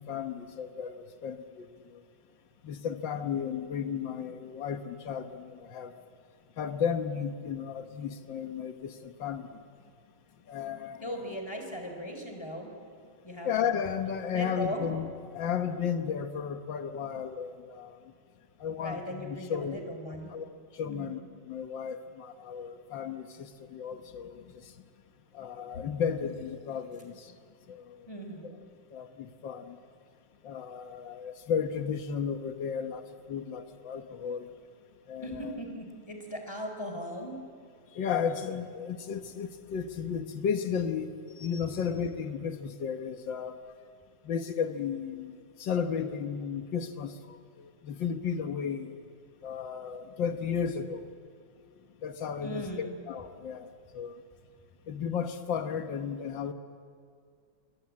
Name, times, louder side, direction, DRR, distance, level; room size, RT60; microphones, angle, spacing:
voice 1, 0.0-2.0 2.6-6.0 6.6-9.6 10.5-11.4 13.4-18.1 18.6-24.8 25.3-27.4 27.7-28.1 28.4-28.5 28.9-29.8 30.4-34.5 35.1-35.6 37.9-43.6 44.2-49.0 49.4-51.1 51.7-54.2 54.9-56.5, left 7 dB, 90° left, 7 dB, 1.9 m, -34 dB
voice 2, 11.0-12.7 13.2-13.5 14.3-14.8 18.8-20.3 20.9-21.1 28.1-28.5 35.2-37.4 52.4-52.9, equal, 15° left, 4 dB, 4.4 m, -38 dB
29.5 x 23.0 x 8.6 m, 2.3 s
omnidirectional pair, 2.0 m